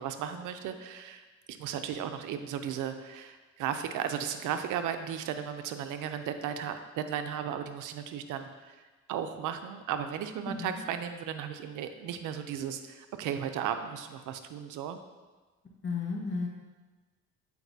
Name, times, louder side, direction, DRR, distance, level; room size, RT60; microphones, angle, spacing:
voice 1, 0.0-8.8 9.1-15.0, right 8 dB, 90° right, 8 dB, 0.5 m, -35 dB
voice 2, 15.8-16.5, left 4 dB, 40° left, -1 dB, 1.2 m, -33 dB
8.1 x 4.7 x 2.7 m, 1.3 s
cardioid pair, 90°, 30 cm